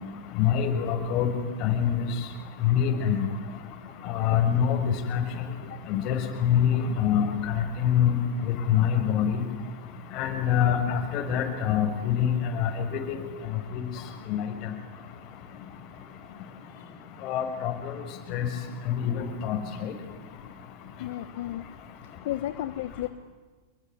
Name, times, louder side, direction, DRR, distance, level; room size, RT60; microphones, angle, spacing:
voice 1, 0.4-1.3 1.6-2.1 2.6-3.3 4.0-5.2 5.9-8.2 8.4-9.4 10.1-12.3 12.6-13.2 13.7-13.8 14.3-14.5 17.2-18.0 18.3-18.5 18.8-19.9, left 9 dB, 45° left, 5 dB, 6.3 m, -25 dB
voice 2, 21.0-21.6 22.2-23.1, left 14 dB, 65° left, 11 dB, 1.2 m, -33 dB
26.5 x 22.5 x 9.6 m, 1.3 s
hypercardioid pair, 110°, 0 cm